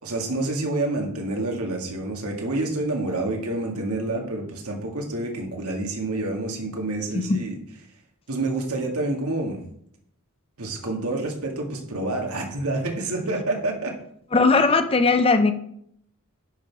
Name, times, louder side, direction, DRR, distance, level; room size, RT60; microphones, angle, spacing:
voice 1, 0.0-7.5 8.3-9.6 10.6-13.9, right 2 dB, 85° right, 1 dB, 2.1 m, -28 dB
voice 2, 14.3-15.5, left 3 dB, 25° left, 9 dB, 0.6 m, -19 dB
10.5 x 5.7 x 4.8 m, 0.68 s
head